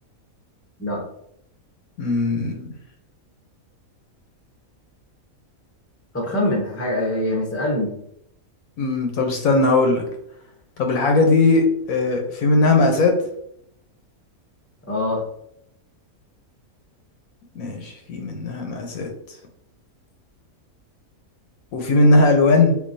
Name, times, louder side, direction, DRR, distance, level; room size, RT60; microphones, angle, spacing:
voice 1, 2.0-2.7 8.8-10.0 10.8-13.2 17.6-19.1 21.7-22.8, left 2 dB, 75° left, 3 dB, 1.0 m, -18 dB
voice 2, 6.1-7.9 14.9-15.2, left 1 dB, 15° left, -1 dB, 0.5 m, -23 dB
3.9 x 2.6 x 2.6 m, 0.73 s
omnidirectional pair, 1.5 m